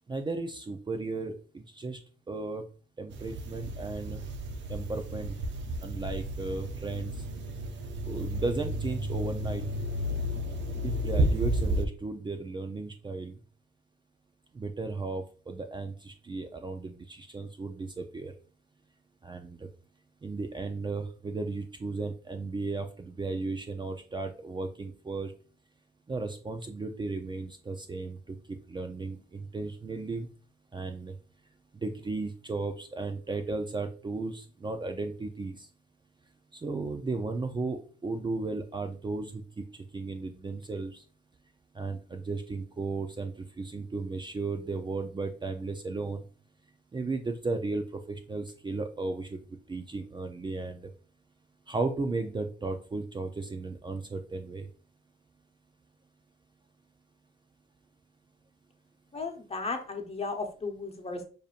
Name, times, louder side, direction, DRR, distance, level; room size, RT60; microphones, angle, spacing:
voice 1, 0.1-2.0 2.3-2.6 3.0-4.2 4.7-5.4 5.8-7.1 8.0-9.6 10.8-13.4 14.5-18.3 19.2-19.7 20.2-25.3 26.1-30.3 30.7-31.1 31.8-35.7 36.5-39.6 39.9-41.0 41.7-46.2 46.9-49.4 49.7-50.9 51.7-54.6, right 3 dB, 25° right, 6 dB, 0.5 m, -35 dB
sound 1, 3.1-11.8, right 1 dB, 65° right, 0.7 m, -32 dB
voice 2, 59.1-61.2, left 3 dB, 30° left, 4 dB, 0.9 m, -35 dB
6.5 x 2.7 x 2.5 m, 0.39 s
cardioid pair, 90°, 20 cm